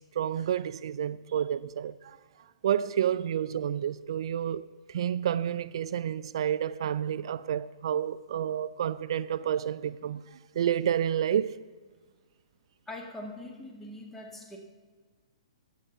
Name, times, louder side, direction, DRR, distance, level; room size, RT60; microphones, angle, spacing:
voice 1, 0.0-1.9 2.6-4.6 4.9-11.6, right 9 dB, 60° right, 0.4 m, -30 dB
voice 2, 12.9-14.6, left 1 dB, 10° left, 2.0 m, -42 dB
12.0 x 8.0 x 7.2 m
hypercardioid pair, 120°, 3 cm